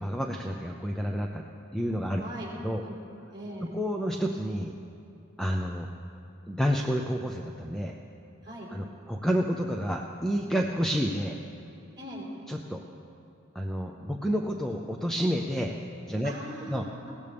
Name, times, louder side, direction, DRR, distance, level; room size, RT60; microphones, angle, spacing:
voice 1, 0.0-1.4 1.7-2.2 2.6-2.8 3.7-4.7 5.4-5.9 6.5-8.0 8.7-11.4 12.5-12.8 13.5-15.7 16.0-16.3 16.7-16.8, equal, ahead, 1 dB, 0.6 m, -29 dB
voice 2, 2.2-2.5 2.8-3.0 3.3-3.7 8.4-8.7 12.0-12.3 16.2-17.1, right 1 dB, 20° right, -6 dB, 4.6 m, -40 dB
21.5 x 17.0 x 3.5 m, 2.7 s
head